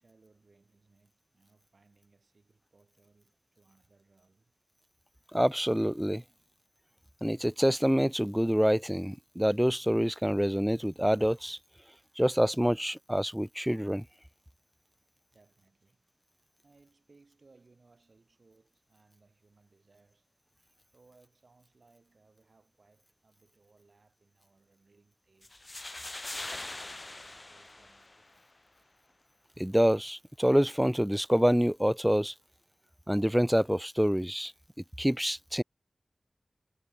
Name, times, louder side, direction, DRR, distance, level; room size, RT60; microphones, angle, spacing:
voice 1, 0.0-4.5 15.3-16.3 16.6-20.4 20.9-25.7 26.2-28.9, right 3 dB, 65° right, 6.7 m, -65 dB
voice 2, 5.3-6.2 7.2-11.6 12.2-14.0 29.6-32.3 33.1-34.5 35.0-35.6, equal, 5° right, 0.3 m, -26 dB
sound 1, 25.4-28.4, left 2 dB, 35° left, 1.4 m, -42 dB
wide cardioid pair, 80°, 0 cm